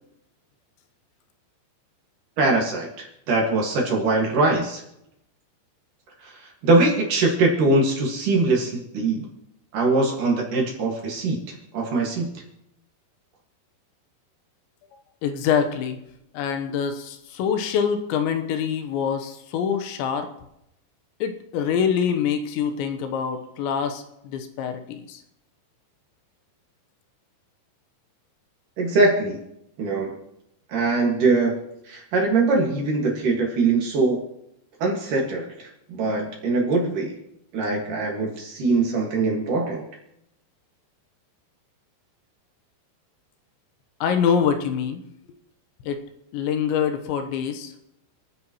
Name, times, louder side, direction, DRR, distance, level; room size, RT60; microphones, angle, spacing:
voice 1, 2.4-4.8 6.2-9.3 9.7-12.3 28.8-29.4 29.8-30.2 30.7-31.5 31.9-34.2 34.8-37.1 37.5-39.8, right 3 dB, 55° right, -1 dB, 3.0 m, -22 dB
voice 2, 15.2-16.0 16.3-20.3 21.2-24.0 24.3-25.2 44.0-45.0 45.9-46.0 46.3-47.7, left 7 dB, 80° left, 7 dB, 3.3 m, -25 dB
28.5 x 9.6 x 3.0 m, 0.81 s
omnidirectional pair, 5.2 m